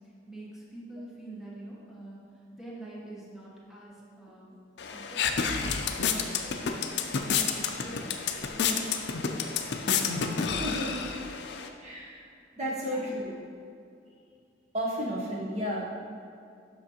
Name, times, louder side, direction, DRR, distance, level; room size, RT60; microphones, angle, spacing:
voice 1, 0.3-2.2 2.5-4.6 4.9-7.0 7.4-8.2 12.6-13.4, right 1 dB, ahead, -6 dB, 1.1 m, -45 dB
sound 1, 4.8-11.7, left 6 dB, 60° left, 0.4 m, -30 dB
voice 2, 10.6-11.0 11.8-12.3 12.6-13.3 14.7-15.9, equal, 40° right, -4 dB, 0.8 m, -32 dB
7.7 x 5.9 x 2.8 m, 2.4 s
head